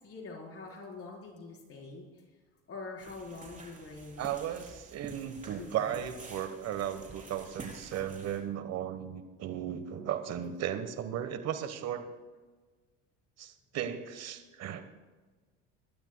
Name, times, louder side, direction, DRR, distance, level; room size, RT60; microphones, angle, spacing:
voice 1, 0.0-2.2 2.7-4.3 5.6-6.1, left 3 dB, 40° left, -1 dB, 4.5 m, -45 dB
sound 1, 3.0-8.4, right 3 dB, 25° right, 4.2 m, -49 dB
voice 2, 4.2-12.1 13.4-14.8, right 10 dB, 50° right, 9 dB, 1.3 m, -36 dB
22.5 x 12.0 x 2.3 m, 1.3 s
hypercardioid pair, 75°, 34 cm